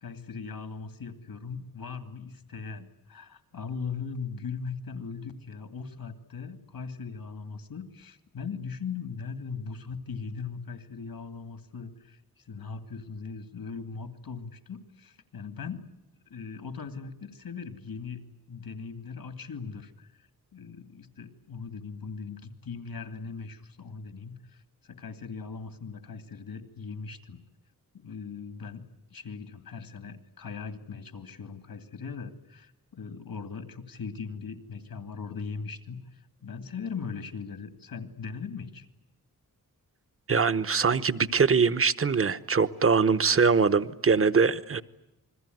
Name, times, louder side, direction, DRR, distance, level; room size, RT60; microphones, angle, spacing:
voice 1, 0.0-15.9 16.3-20.1 20.5-27.4 27.9-28.8 29.1-38.9, left 5 dB, 85° left, 9 dB, 2.6 m, -39 dB
voice 2, 40.3-44.8, right 5 dB, 40° right, 14 dB, 1.0 m, -23 dB
28.5 x 21.5 x 9.4 m, 0.89 s
wide cardioid pair, 135°, 35 cm